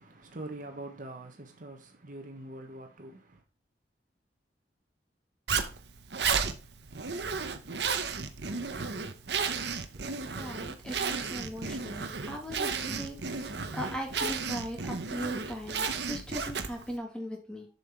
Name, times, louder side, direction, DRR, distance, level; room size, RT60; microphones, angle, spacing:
voice 1, 0.0-3.1, right 1 dB, 50° right, 1.3 m, -43 dB
Zipper (clothing), 5.5-16.9, right 5 dB, 70° right, 0.9 m, -33 dB
voice 2, 10.4-17.7, equal, 5° left, 2.3 m, -39 dB
7.3 x 5.7 x 4.5 m
head